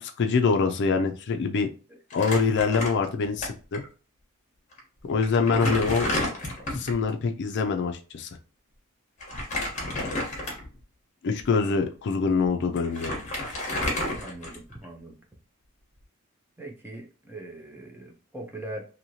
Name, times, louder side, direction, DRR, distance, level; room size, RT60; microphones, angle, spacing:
voice 1, 0.0-1.7 2.1-3.8 5.1-6.1 6.7-8.3 11.2-13.1, left 4 dB, 55° left, 0.4 m, -24 dB
Crumpling crinkling, 2.1-3.4 3.7-3.8 4.7-4.8 5.2-7.0 9.2-10.8 11.4-11.5 12.4-12.5 12.8-14.8, left 1 dB, 35° left, 1.0 m, -31 dB
voice 2, 14.1-15.2 16.6-18.8, right 1 dB, 10° right, 0.5 m, -41 dB
2.9 x 2.7 x 2.7 m
head